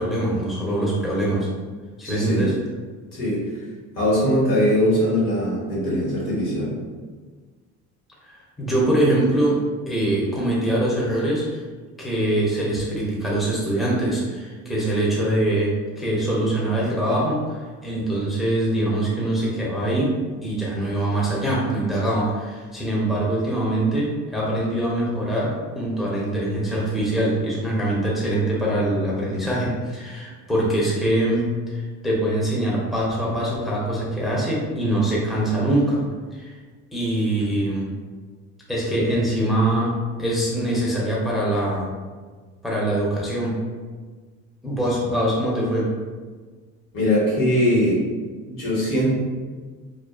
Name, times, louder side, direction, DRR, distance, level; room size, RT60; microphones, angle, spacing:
voice 1, 0.0-1.5 2.0-2.5 8.2-9.6 9.9-11.6 12.0-15.7 16.0-20.1 20.4-36.0 36.3-36.6 36.9-37.9 38.7-39.9 40.2-41.9 42.6-43.5 44.6-45.9, right 1 dB, ahead, -6 dB, 0.6 m, -23 dB
voice 2, 2.0-2.5 3.1-3.4 3.9-6.7 46.9-48.0 48.6-49.1, equal, 70° left, -6 dB, 1.2 m, -21 dB
2.4 x 2.3 x 2.3 m, 1.4 s
supercardioid pair, 90°, 34 cm